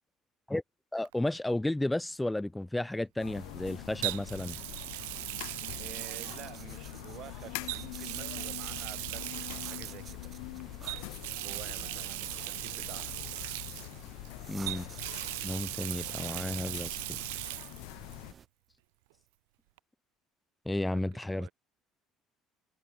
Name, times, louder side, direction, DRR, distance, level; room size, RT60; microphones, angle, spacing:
voice 1, 0.9-4.6 14.5-14.9 15.4-17.0 20.7-21.5, left 1 dB, 10° left, 0.5 m, -32 dB
Water tap faucet, 1.1-1.3 4.0-7.1 7.6-10.1 10.9-14.3 14.7-17.8 18.1-18.2 19.8-19.9, right 24 dB, 85° right, 0.5 m, -39 dB
sound 1, 3.2-18.3, left 40 dB or more, 80° left, 1.8 m, -44 dB
sound 2, 3.3-18.5, right 7 dB, 40° right, 1.2 m, -52 dB
voice 2, 5.8-10.3 11.4-13.1 20.9-21.5, right 14 dB, 65° right, 5.1 m, -49 dB
hypercardioid pair, 75°, 0 cm